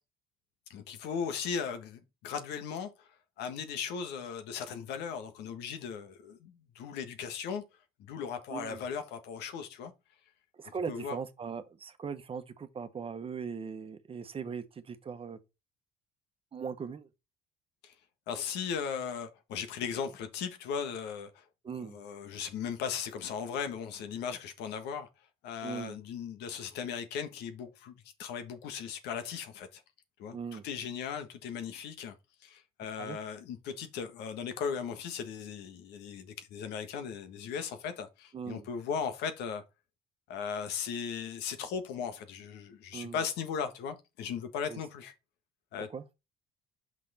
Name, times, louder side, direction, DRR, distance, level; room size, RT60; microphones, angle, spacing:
voice 1, 0.7-3.1 3.4-7.6 8.0-9.9 10.9-11.2 17.8-17.9 18.3-21.4 21.8-25.1 25.4-29.8 30.2-32.2 32.4-39.6 40.3-45.1 45.7-45.9, left 7 dB, 85° left, 1.5 m, -37 dB
voice 2, 8.5-8.8 10.5-15.4 16.5-17.1 21.6-22.0 25.6-26.0 30.3-30.7 33.0-33.2 38.3-38.7 42.9-43.2 44.7-44.8 45.9-46.0, right 6 dB, 35° right, 1.1 m, -39 dB
6.0 x 5.9 x 4.2 m
cardioid pair, 110°, 17 cm